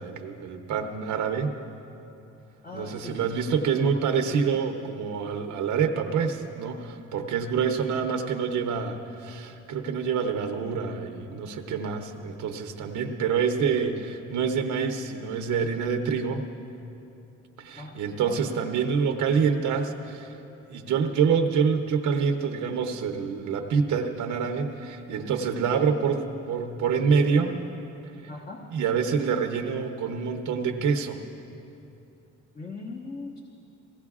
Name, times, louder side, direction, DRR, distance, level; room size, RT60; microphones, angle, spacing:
voice 1, 0.0-1.5 2.7-16.5 17.6-20.3 20.7-27.6 28.7-31.2, right 6 dB, 80° right, 5 dB, 0.8 m, -26 dB
voice 2, 2.6-3.4 17.8-18.6 28.3-28.7 32.5-33.4, left 3 dB, 30° left, -2 dB, 1.2 m, -40 dB
18.0 x 16.5 x 2.4 m, 2.8 s
cardioid pair, 90°, 30 cm